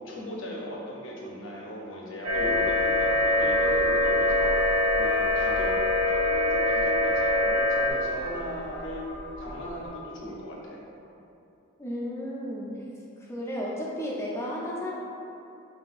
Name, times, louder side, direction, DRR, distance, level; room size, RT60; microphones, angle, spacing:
voice 1, 0.0-5.8 6.1-9.1 9.4-10.8, equal, 60° left, -3 dB, 0.7 m, -38 dB
sound 1, 2.2-7.9, left 1 dB, 80° right, 0.5 m, -24 dB
sound 2, 2.3-9.9, left 1 dB, 40° right, 1.3 m, -39 dB
voice 2, 11.8-12.7 13.3-14.9, equal, 15° left, -4 dB, 0.5 m, -33 dB
6.1 x 2.7 x 2.4 m, 2.8 s
head